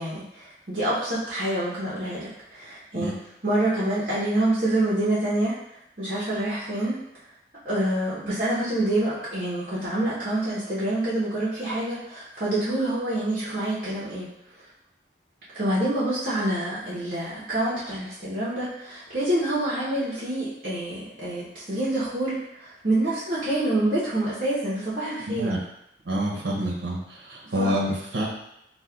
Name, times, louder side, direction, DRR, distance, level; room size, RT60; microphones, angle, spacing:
voice 1, 0.0-3.1 3.4-5.6 6.0-7.0 7.6-14.3 15.5-25.5 27.4-27.7, right 1 dB, 50° right, -9 dB, 0.8 m, -27 dB
voice 2, 25.3-25.6 26.1-28.3, equal, 90° right, -2 dB, 0.6 m, -27 dB
5.2 x 2.1 x 2.2 m, 0.79 s
head